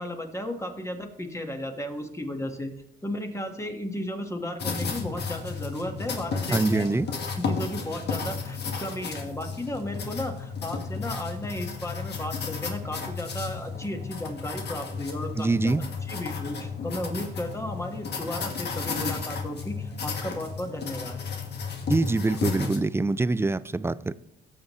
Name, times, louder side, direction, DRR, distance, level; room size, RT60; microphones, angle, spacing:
voice 1, 0.0-2.7 3.0-15.7 16.1-21.2, left 1 dB, 15° left, 4 dB, 1.7 m, -34 dB
sound 1, 4.6-22.8, left 5 dB, 55° left, 1.7 m, -33 dB
voice 2, 6.5-7.1 15.4-15.8 21.9-24.1, right 3 dB, 10° right, 17 dB, 0.4 m, -24 dB
17.5 x 7.4 x 3.2 m, 0.89 s
cardioid pair, 90°, 20 cm